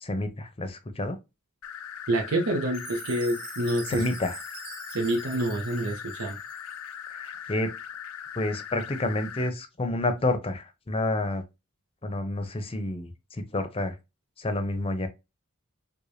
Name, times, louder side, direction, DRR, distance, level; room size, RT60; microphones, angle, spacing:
voice 1, 0.0-1.2 3.9-4.4 7.1-7.7 8.4-11.4 12.0-13.9 14.4-15.1, left 2 dB, 25° left, 0.6 m, -29 dB
sound 1, 1.6-9.5, left 8 dB, 80° left, 0.5 m, -40 dB
voice 2, 2.1-4.0 4.9-6.4, right 1 dB, 85° right, 0.8 m, -27 dB
Chime, 2.7-7.0, right 6 dB, 45° right, 0.8 m, -45 dB
4.8 x 2.2 x 2.6 m
head